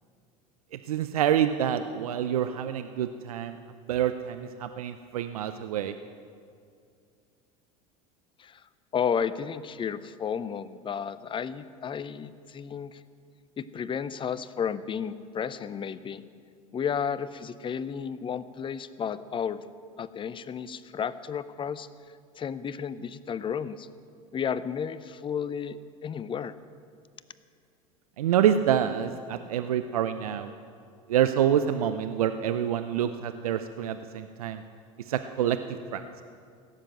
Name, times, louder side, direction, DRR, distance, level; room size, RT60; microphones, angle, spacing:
voice 1, 0.9-3.6 3.9-5.9 28.2-30.5 31.1-34.6 35.1-35.6 35.9-36.0, right 10 dB, 85° right, 10 dB, 0.5 m, -27 dB
voice 2, 8.9-13.0 13.6-16.2 16.7-19.6 20.0-21.9 22.4-23.9 24.3-25.8 26.0-26.5, left 7 dB, 30° left, 15 dB, 0.6 m, -32 dB
16.5 x 7.4 x 7.7 m, 2.3 s
hypercardioid pair, 85°, 18 cm